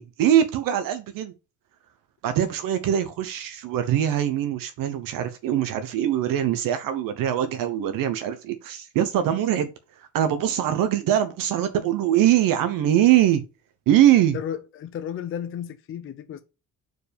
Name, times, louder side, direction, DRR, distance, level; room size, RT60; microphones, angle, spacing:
voice 1, 0.0-1.3 2.2-9.7 10.1-13.4 13.9-14.4, right 11 dB, 75° right, 1.0 m, -22 dB
voice 2, 14.3-16.4, left 9 dB, 40° left, 0.6 m, -33 dB
4.8 x 4.7 x 5.0 m
cardioid pair, 150°, 34 cm